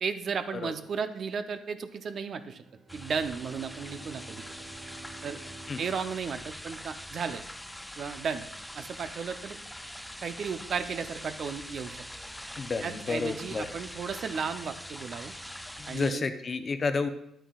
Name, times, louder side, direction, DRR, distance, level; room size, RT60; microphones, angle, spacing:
voice 1, 0.0-2.6 2.9-4.6 5.2-5.4 5.8-7.4 8.0-8.5 8.7-9.6 10.2-12.0 12.8-15.3 15.8-16.3, right 6 dB, 55° right, 9 dB, 0.6 m, -34 dB
Bowed string instrument, 2.5-7.2, right 4 dB, 70° right, 1.1 m, -52 dB
sound 1, 2.9-16.1, equal, 5° left, 0.4 m, -43 dB
voice 2, 12.6-13.7 15.8-17.1, left 4 dB, 40° left, 9 dB, 0.7 m, -31 dB
10.5 x 8.8 x 2.4 m, 0.78 s
cardioid pair, 90°, 0 cm